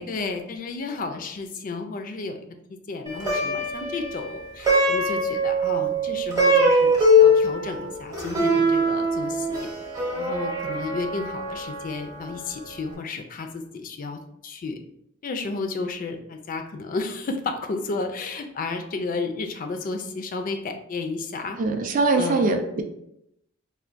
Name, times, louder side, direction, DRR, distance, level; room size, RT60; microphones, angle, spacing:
voice 1, 0.0-9.7 10.1-14.8 15.2-21.6 22.1-22.5, left 3 dB, 40° left, 6 dB, 0.3 m, -32 dB
Plucked string instrument, 3.1-12.5, equal, 20° right, 0.8 m, -22 dB
voice 2, 21.6-22.8, right 3 dB, 40° right, 5 dB, 0.3 m, -22 dB
4.3 x 2.2 x 2.4 m, 0.80 s
head